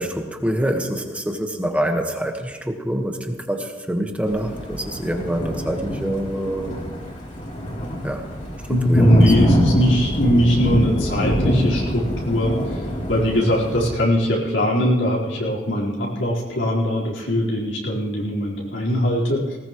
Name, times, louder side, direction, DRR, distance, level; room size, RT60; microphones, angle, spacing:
voice 1, 0.0-6.8 8.0-8.3 8.7-9.3, right 1 dB, 5° right, 3 dB, 1.4 m, -26 dB
Thunder, 4.3-13.9, equal, 40° left, 3.2 m, -24 dB
voice 2, 8.7-19.6, equal, 85° left, -5 dB, 4.4 m, -21 dB
19.5 x 19.0 x 3.1 m, 1.2 s
head